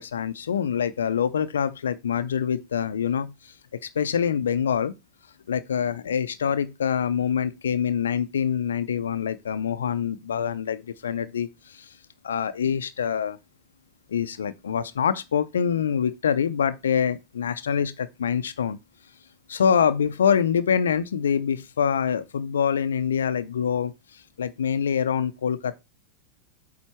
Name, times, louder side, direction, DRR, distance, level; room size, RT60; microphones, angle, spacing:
voice 1, 0.0-4.9 5.5-11.9 12.2-13.4 14.1-18.8 19.5-25.8, left 7 dB, 75° left, 0.5 m, -25 dB
8.5 x 4.0 x 4.4 m
hypercardioid pair, 95°, 0 cm